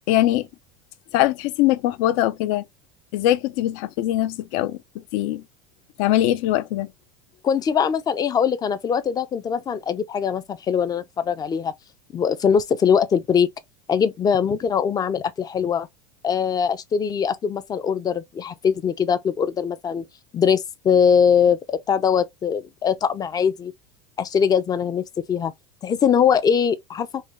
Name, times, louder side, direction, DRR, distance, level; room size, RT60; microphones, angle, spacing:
voice 1, 0.1-0.5 1.1-2.6 3.1-5.4 6.0-6.9, left 14 dB, 60° left, 0.8 m, -22 dB
voice 2, 7.4-11.7 12.1-13.5 13.9-15.9 16.2-20.0 20.3-23.7 24.2-25.5 25.8-27.2, left 7 dB, 20° left, 0.6 m, -21 dB
5.4 x 2.3 x 3.2 m
supercardioid pair, 145°, 19 cm